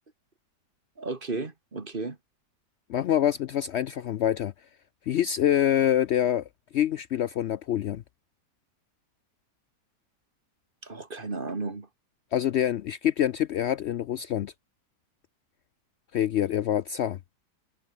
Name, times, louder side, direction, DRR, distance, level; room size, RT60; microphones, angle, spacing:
voice 1, 1.0-2.2 10.8-11.9, right 3 dB, 30° right, 2.2 m, -34 dB
voice 2, 2.9-4.5 5.1-6.4 6.7-8.0 12.3-14.5 16.1-17.2, left 10 dB, 90° left, 0.5 m, -25 dB
omnidirectional pair, 1.8 m